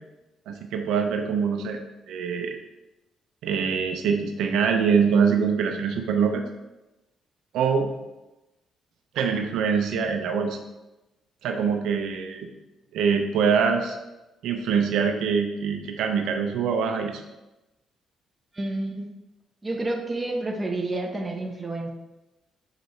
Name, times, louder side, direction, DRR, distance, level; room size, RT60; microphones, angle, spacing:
voice 1, 0.5-1.8 2.1-2.6 3.4-6.4 7.5-7.9 9.1-10.6 11.4-12.5 12.9-14.0 14.4-17.2, right 6 dB, 85° right, 4 dB, 0.6 m, -24 dB
voice 2, 18.5-19.1 19.6-21.9, right 2 dB, 20° right, 2 dB, 0.9 m, -29 dB
6.4 x 5.1 x 3.2 m, 1.0 s
cardioid pair, 90°, 0 cm